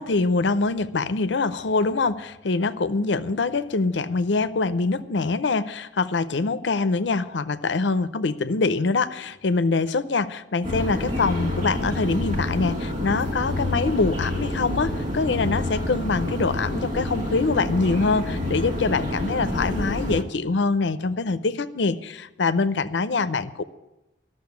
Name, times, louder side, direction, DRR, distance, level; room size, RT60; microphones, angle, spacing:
voice 1, 0.0-23.6, left 3 dB, 75° left, 13 dB, 0.6 m, -24 dB
sound 1, 10.6-20.2, left 1 dB, 40° right, 1.7 m, -28 dB
12.5 x 6.5 x 9.5 m, 0.99 s
head